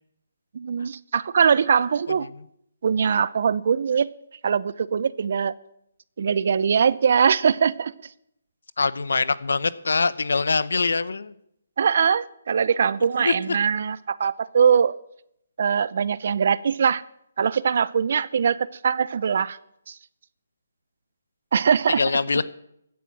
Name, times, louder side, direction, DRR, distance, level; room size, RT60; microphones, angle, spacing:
voice 1, 0.5-2.3 2.8-4.1 4.4-5.5 6.2-7.9 11.8-15.0 15.6-17.0 17.4-19.6 19.9-20.0 21.5-22.0, right 7 dB, 55° right, 20 dB, 0.7 m, -22 dB
voice 2, 8.8-11.3 13.2-13.6 21.9-22.5, left 4 dB, 75° left, 18 dB, 0.9 m, -23 dB
15.5 x 9.4 x 7.3 m, 0.76 s
hypercardioid pair, 155°, 0 cm